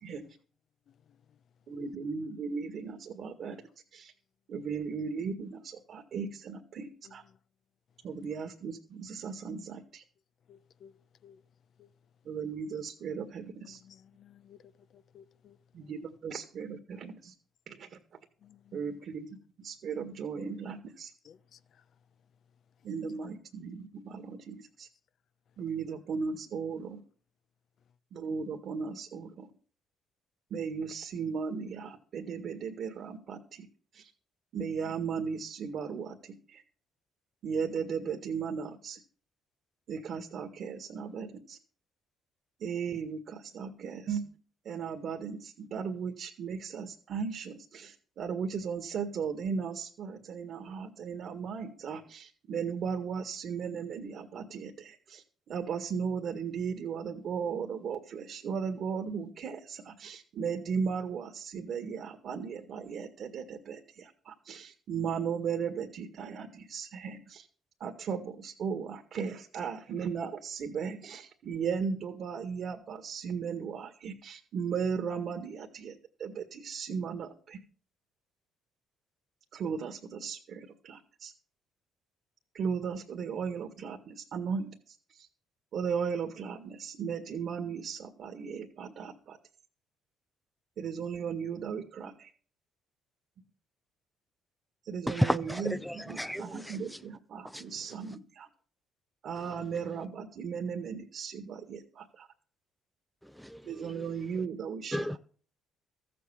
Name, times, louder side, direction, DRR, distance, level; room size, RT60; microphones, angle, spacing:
voice 1, 1.7-3.6 3.9-4.1 4.5-7.2 8.0-10.0 12.2-13.8 15.7-17.3 17.7-18.0 18.7-21.1 22.8-24.9 25.6-27.0 28.1-29.5 30.5-33.7 33.9-34.1 34.5-36.6 37.4-39.0 39.9-41.6 42.6-44.3 44.6-55.2 55.5-67.5 67.8-77.6 79.5-81.3 82.5-85.3 85.7-89.4 90.8-92.3 94.8-95.7 96.1-98.5 99.2-102.3 103.6-105.0, right 6 dB, 60° right, 1.8 m, -36 dB
voice 2, 10.5-10.9 11.2-11.4 11.8-11.9 13.6-14.6 14.9-15.9 18.4-18.9 21.2-21.8, left 8 dB, 60° left, 0.8 m, -57 dB
voice 3, 95.1-97.0 97.4-98.2 99.4-99.6 103.2-104.4 104.9-105.2, equal, ahead, 0.6 m, -34 dB
14.0 x 7.8 x 7.0 m
supercardioid pair, 70°, 0 cm